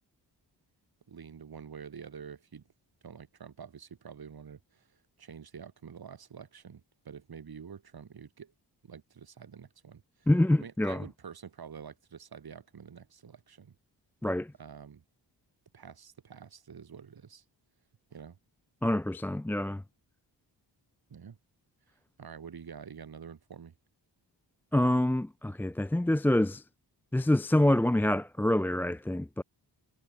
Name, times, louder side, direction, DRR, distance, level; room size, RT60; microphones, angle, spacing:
voice 1, 1.1-2.6 3.0-8.5 8.8-10.3 10.6-13.7 14.6-15.0 15.7-17.4 18.1-18.4 21.1-21.4 22.2-23.7, right 7 dB, 55° right, 4.4 m, -47 dB
voice 2, 10.3-11.0 14.2-14.5 18.8-19.8 24.7-26.6 27.1-29.4, left 1 dB, 5° left, 0.3 m, -26 dB
wide cardioid pair, 130°, 44 cm